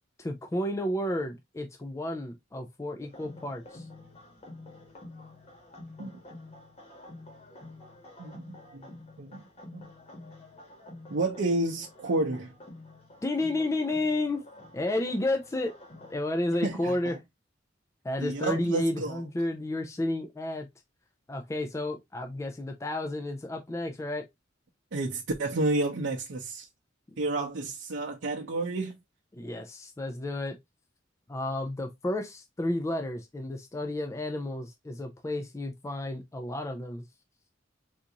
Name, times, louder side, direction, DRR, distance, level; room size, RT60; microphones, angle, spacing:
voice 1, 0.2-3.8 13.2-14.4 14.7-15.7 16.1-17.1 18.0-20.7 21.3-24.2 27.1-27.2 29.4-30.6 31.3-37.0, left 1 dB, 15° left, 0.3 m, -31 dB
sound 1, 3.0-16.1, left 2 dB, 35° left, 1.1 m, -49 dB
voice 2, 11.1-12.5 16.6-17.2 18.2-19.2 24.9-26.7 27.2-28.9, right 2 dB, 85° right, 0.6 m, -30 dB
3.8 x 2.4 x 2.8 m
head